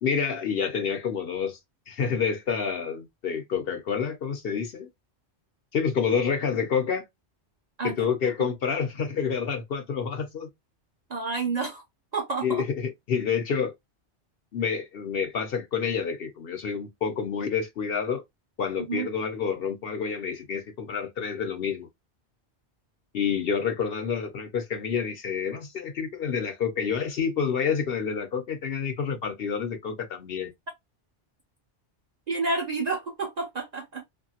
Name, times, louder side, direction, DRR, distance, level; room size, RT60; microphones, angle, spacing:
voice 1, 0.0-1.6 1.9-4.9 5.7-7.0 7.8-10.5 12.4-13.7 14.5-18.2 18.6-21.9 23.1-30.5, left 6 dB, 60° left, 0.9 m, -28 dB
voice 2, 11.1-11.8 12.1-12.6 18.8-19.1 32.3-34.0, right 3 dB, 45° right, 0.6 m, -29 dB
2.8 x 2.6 x 2.7 m
omnidirectional pair, 1.2 m